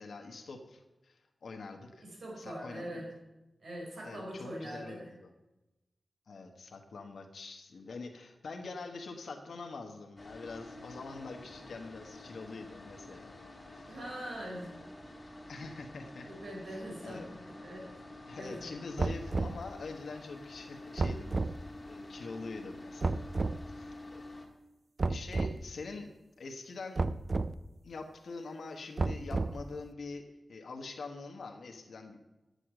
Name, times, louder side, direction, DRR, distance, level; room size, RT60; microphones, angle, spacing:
voice 1, 0.0-2.1 2.4-3.0 4.0-5.3 6.3-13.3 13.7-14.0 15.5-16.3 16.7-17.3 18.3-21.4 21.8-23.3 23.7-24.2 25.1-26.1 26.4-27.0 27.8-32.2, left 3 dB, 85° left, 4 dB, 1.1 m, -45 dB
voice 2, 2.0-3.1 3.6-5.1 13.9-14.7 16.3-17.9 18.4-18.6, equal, 80° right, -2 dB, 4.0 m, -42 dB
sound 1, 10.2-24.5, left 2 dB, 20° left, 1.5 m, -49 dB
sound 2, 19.0-19.6 21.0-21.6 23.0-23.6 25.0-25.6 27.0-27.5 29.0-29.7, right 3 dB, 40° right, 0.3 m, -31 dB
9.2 x 6.6 x 7.5 m, 1.0 s
wide cardioid pair, 135°, 0 cm